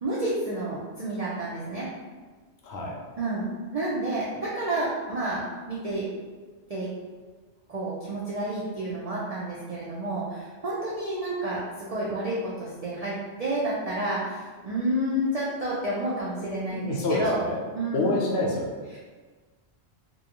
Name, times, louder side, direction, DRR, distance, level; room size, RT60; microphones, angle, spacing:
voice 1, 0.0-1.9 3.2-3.4 3.7-6.1 6.7-6.9 7.7-17.4 17.8-18.1 18.9-19.0, right 1 dB, 65° right, -7 dB, 0.3 m, -30 dB
voice 2, 2.6-3.0 16.7-17.6 17.9-18.8, left 2 dB, 70° left, -2 dB, 0.8 m, -27 dB
2.4 x 2.2 x 2.8 m, 1.4 s
omnidirectional pair, 1.2 m